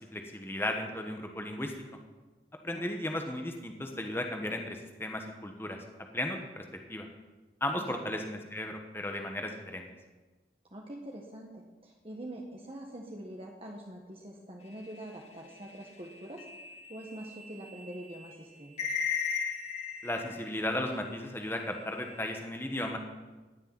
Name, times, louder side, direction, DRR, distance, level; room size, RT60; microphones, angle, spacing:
voice 1, 0.0-1.7 2.6-5.8 6.1-7.1 7.6-9.9 20.0-23.0, left 1 dB, 15° left, 3 dB, 1.3 m, -35 dB
voice 2, 7.8-8.2 10.7-16.4 16.9-19.0, right 1 dB, 30° right, 0 dB, 1.4 m, -44 dB
sound 1, 14.7-21.0 21.4-22.3, left 7 dB, 40° left, 2.1 m, -38 dB
17.0 x 6.7 x 9.5 m, 1.2 s
head